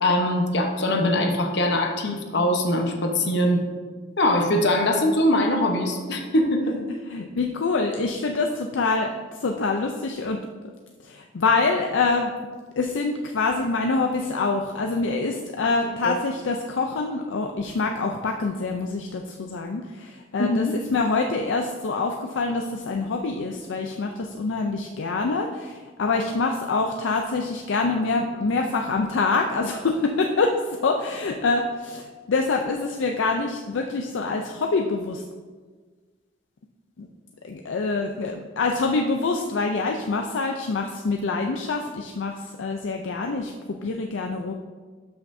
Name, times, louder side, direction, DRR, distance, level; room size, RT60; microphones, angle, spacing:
voice 1, 0.0-3.6 4.2-6.8 15.6-15.7 16.0-16.1 20.4-20.8, left 1 dB, 60° left, 4 dB, 1.0 m, -22 dB
voice 2, 6.7-9.1 9.4-10.7 11.0-12.3 12.8-30.5 30.8-35.2 37.0-37.1 37.4-44.5, left 3 dB, 80° left, 3 dB, 0.5 m, -25 dB
12.0 x 5.7 x 2.7 m, 1.5 s
head